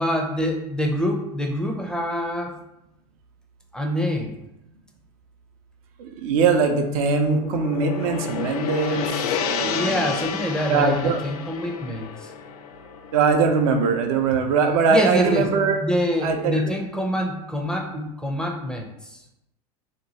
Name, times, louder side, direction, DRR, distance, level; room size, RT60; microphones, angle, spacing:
voice 1, 0.0-2.5 3.7-4.4 9.6-12.3 14.9-19.2, equal, 5° left, 1 dB, 0.5 m, -26 dB
voice 2, 6.0-10.2 10.7-11.2 13.1-15.8 16.2-16.6, right 5 dB, 65° right, 5 dB, 0.6 m, -21 dB
Gong, 6.8-15.1, left 7 dB, 70° left, 0.4 m, -31 dB
2.9 x 2.2 x 4.1 m, 0.85 s
hypercardioid pair, 105°, 20 cm